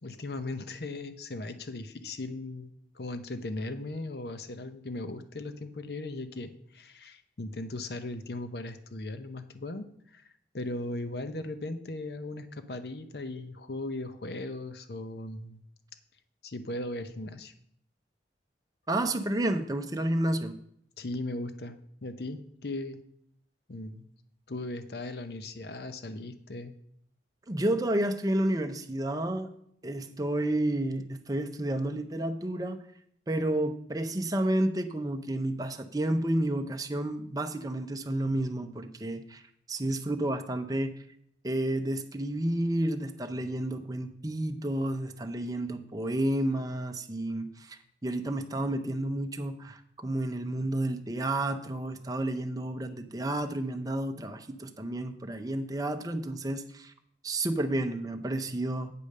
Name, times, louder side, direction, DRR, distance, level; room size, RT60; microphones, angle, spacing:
voice 1, 0.0-10.2 10.5-15.6 16.4-17.5 21.0-23.0 23.7-24.1 24.5-26.8, left 2 dB, 60° left, 10 dB, 0.7 m, -38 dB
voice 2, 18.9-20.6 27.5-29.5 29.8-32.8 33.3-39.4 39.7-41.0 41.4-56.9 57.2-58.9, right 1 dB, 20° right, 7 dB, 0.6 m, -31 dB
8.5 x 5.1 x 6.5 m, 0.69 s
head